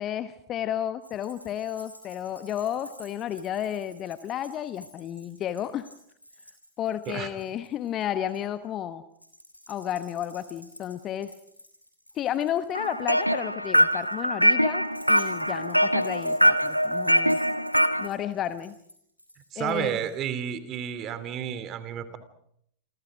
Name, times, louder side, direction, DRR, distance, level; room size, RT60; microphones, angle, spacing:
voice 1, 0.0-5.9 6.8-9.0 9.7-11.3 12.1-17.4 18.0-18.8 19.6-20.0, left 10 dB, 30° left, 13 dB, 1.1 m, -32 dB
Keys jangling, 1.0-8.4 9.2-20.1, equal, 90° left, 5.7 m, -52 dB
sound 1, 12.7-18.1, equal, 90° right, 1.2 m, -23 dB
voice 2, 19.5-22.2, right 9 dB, 35° right, 13 dB, 2.9 m, -31 dB
28.5 x 25.5 x 5.0 m, 0.68 s
figure-of-eight pair, 90°, 0 cm